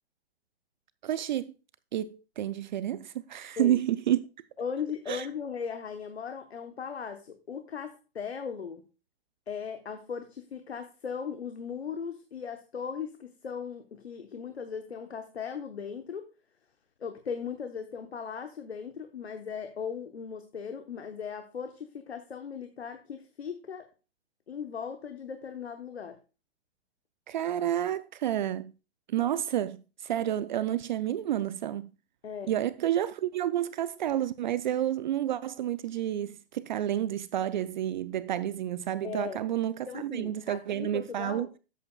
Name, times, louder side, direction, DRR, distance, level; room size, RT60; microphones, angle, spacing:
voice 1, 1.0-1.5 1.9-4.2 5.1-5.3 27.3-28.7 29.1-31.9 32.5-41.5, right 11 dB, 45° right, 0.4 m, -30 dB
voice 2, 4.6-8.8 9.5-16.2 17.0-23.9 24.5-26.2 32.2-32.5 39.0-39.4 39.9-41.5, left 6 dB, 80° left, 1.1 m, -38 dB
12.5 x 8.3 x 2.2 m
figure-of-eight pair, 115°, 32 cm